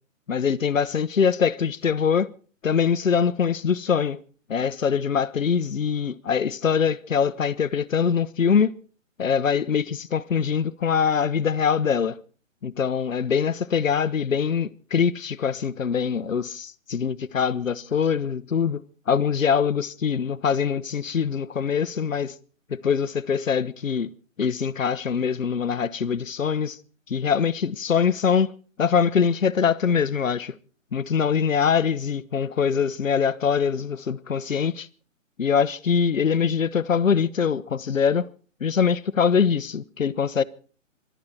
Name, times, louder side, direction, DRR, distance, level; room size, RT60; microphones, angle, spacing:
voice 1, 0.3-2.3 2.6-4.2 4.5-8.7 9.2-12.2 12.6-22.3 22.7-24.1 24.4-26.8 27.1-28.5 28.8-30.5 30.9-34.9 35.4-38.3 38.6-40.4, left 6 dB, 75° left, 1.2 m, -23 dB
26.5 x 13.0 x 4.2 m
hypercardioid pair, 145°, 40 cm